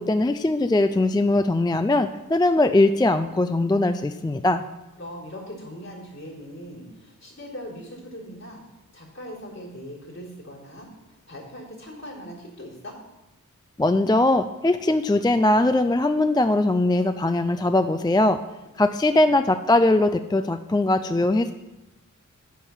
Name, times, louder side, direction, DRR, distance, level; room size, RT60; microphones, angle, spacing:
voice 1, 0.0-4.6 13.8-18.4 18.8-21.5, left 2 dB, 15° left, 9 dB, 0.4 m, -21 dB
voice 2, 5.0-8.6 8.9-10.9 11.3-12.9 18.8-18.9, equal, 55° left, -3 dB, 3.8 m, -40 dB
10.0 x 4.5 x 7.2 m, 1.0 s
wide cardioid pair, 65°, 32 cm